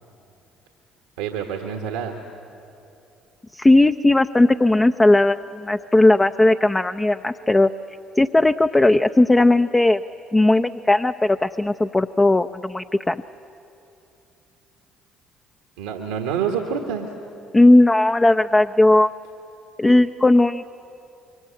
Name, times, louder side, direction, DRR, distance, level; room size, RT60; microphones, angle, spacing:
voice 1, 1.2-2.2 15.8-17.1, right 7 dB, 85° right, 3 dB, 1.4 m, -27 dB
voice 2, 3.5-7.7 8.2-10.0 10.3-13.2 17.5-19.1 19.8-20.6, left 2 dB, 20° left, 8 dB, 0.6 m, -17 dB
26.0 x 23.5 x 8.5 m, 2.8 s
hypercardioid pair, 60°, 0 cm